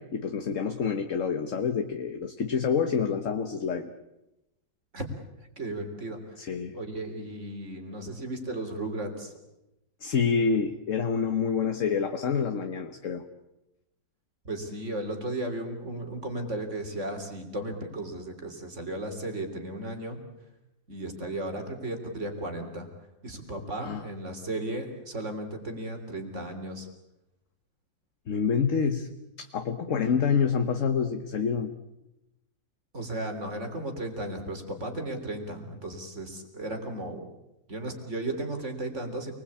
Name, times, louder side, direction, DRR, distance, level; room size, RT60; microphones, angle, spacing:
voice 1, 0.0-3.9 6.4-6.8 10.0-13.2 23.8-24.0 28.3-29.1 29.4-31.7, left 6 dB, 50° left, 7 dB, 1.4 m, -27 dB
voice 2, 5.6-6.4 6.7-9.3 14.4-20.2 20.9-22.9 23.2-26.9 29.9-30.0 32.9-37.3 37.7-39.3, right 1 dB, 40° right, 5 dB, 3.7 m, -35 dB
28.0 x 20.5 x 8.6 m, 0.93 s
omnidirectional pair, 2.0 m